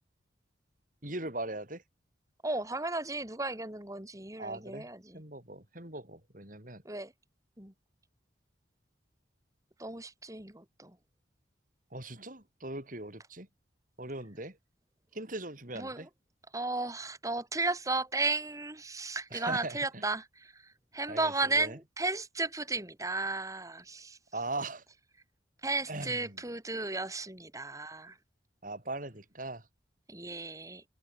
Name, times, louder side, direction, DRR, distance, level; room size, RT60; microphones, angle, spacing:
voice 1, 1.0-1.8 4.4-4.9 5.1-6.8 11.9-13.5 14.0-14.6 15.1-16.1 19.3-20.0 21.1-21.8 24.3-24.8 25.9-26.4 28.6-29.6, right 2 dB, 45° right, 6.0 m, -40 dB
voice 2, 2.4-5.2 6.9-7.1 7.6-7.7 9.8-11.0 15.8-16.1 16.5-24.2 25.6-28.2 30.1-30.8, right 3 dB, 20° right, 3.5 m, -34 dB
head